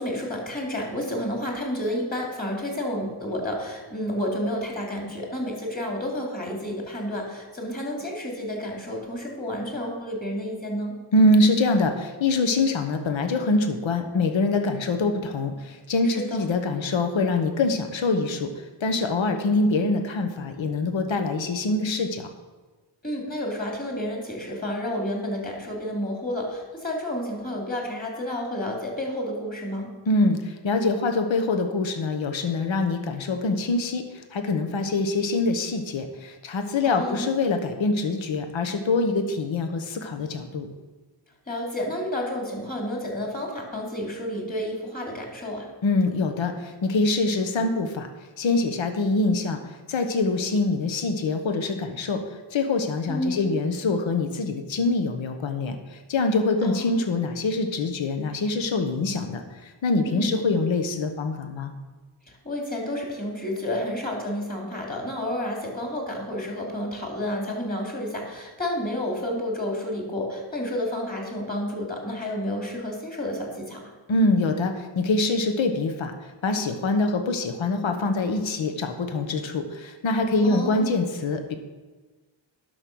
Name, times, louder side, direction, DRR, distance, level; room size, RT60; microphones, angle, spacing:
voice 1, 0.0-11.0 16.0-16.5 23.0-29.9 36.8-37.3 41.5-45.7 53.1-53.5 56.6-57.0 60.1-60.3 62.4-73.8 80.4-80.9, left 1 dB, 20° left, 0 dB, 3.3 m, -30 dB
voice 2, 11.1-18.5 18.8-22.3 30.1-34.0 34.3-40.7 45.8-48.1 48.4-49.6 49.9-52.2 52.5-55.8 56.1-59.4 59.8-61.7 74.1-76.1 76.4-81.5, left 2 dB, 70° left, 7 dB, 1.2 m, -24 dB
11.0 x 6.4 x 6.3 m, 1.3 s
wide cardioid pair, 85°, 48 cm